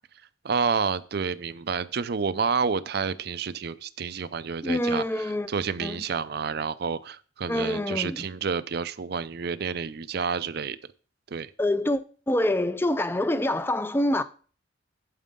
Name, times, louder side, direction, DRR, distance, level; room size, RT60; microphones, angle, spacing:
voice 1, 0.4-10.8 11.3-11.5, right 5 dB, 50° right, 0.5 m, -29 dB
voice 2, 4.6-5.5 5.8-6.0 7.5-8.3 11.6-12.0 12.3-14.2, left 1 dB, 10° left, 0.4 m, -26 dB
9.0 x 7.6 x 3.7 m
head